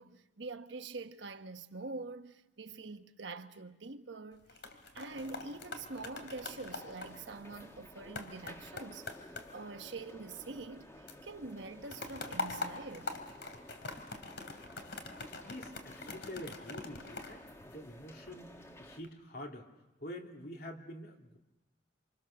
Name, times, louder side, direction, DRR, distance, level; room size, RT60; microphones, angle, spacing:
voice 1, 0.0-4.5 4.9-13.2, right 3 dB, 80° right, 1.3 m, -45 dB
sound 1, 4.3-10.8 11.1-18.3 18.8-19.1, left 3 dB, 70° left, 3.0 m, -44 dB
sound 2, 5.1-19.0, left 1 dB, 15° left, 1.8 m, -54 dB
voice 2, 15.4-19.7 20.0-21.4, left 1 dB, 55° left, 3.0 m, -47 dB
28.0 x 27.5 x 6.7 m
head